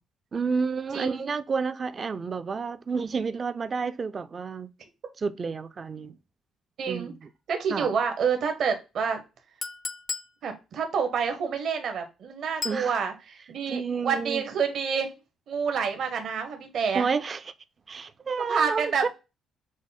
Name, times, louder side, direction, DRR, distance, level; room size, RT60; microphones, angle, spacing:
voice 1, 0.3-4.7 5.2-6.2 6.9-7.2 7.7-7.9 12.6-12.9 13.7-14.4 16.9-17.4 17.9-19.1, right 5 dB, 30° right, 0.4 m, -30 dB
voice 2, 6.8-7.1 7.5-9.2 10.4-15.1 15.5-17.1 18.5-19.1, right 6 dB, 60° right, 1.0 m, -28 dB
Chink clink, 9.6-10.3 12.6-12.9, left 4 dB, 35° left, 0.4 m, -34 dB
6.1 x 2.1 x 4.0 m
cardioid pair, 125°, 0 cm